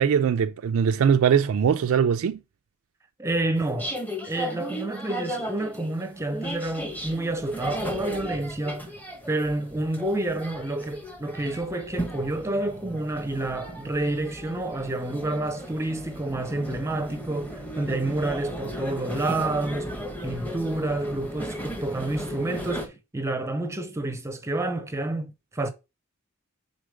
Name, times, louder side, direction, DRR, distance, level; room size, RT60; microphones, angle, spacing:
voice 1, 0.0-2.4, right 7 dB, 85° right, 0.3 m, -21 dB
voice 2, 3.2-3.9 4.2-8.9 9.3-20.0 20.2-25.7, right 2 dB, 15° right, 0.6 m, -29 dB
sound 1, 3.6-22.9, equal, 10° left, 0.9 m, -36 dB
4.9 x 3.8 x 5.0 m
head